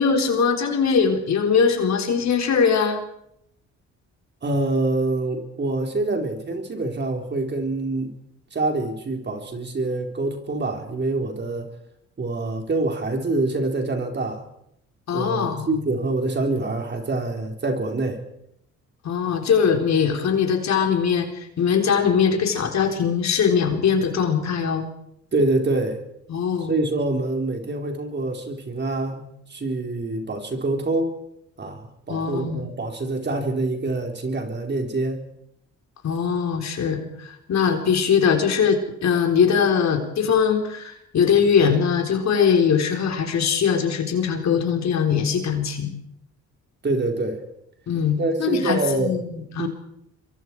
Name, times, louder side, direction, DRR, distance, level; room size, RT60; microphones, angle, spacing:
voice 1, 0.0-3.0 15.1-15.8 19.0-24.9 26.3-26.7 32.1-32.7 36.0-46.0 47.9-49.7, left 6 dB, 65° left, 4 dB, 4.0 m, -21 dB
voice 2, 4.4-8.1 8.5-11.7 12.2-14.4 15.1-18.2 25.3-26.0 26.7-31.1 31.6-35.2 46.8-47.4 48.2-49.2 49.6-49.7, right 2 dB, 35° right, 3 dB, 4.3 m, -25 dB
26.0 x 23.0 x 4.8 m, 0.76 s
cardioid pair, 90°, 30 cm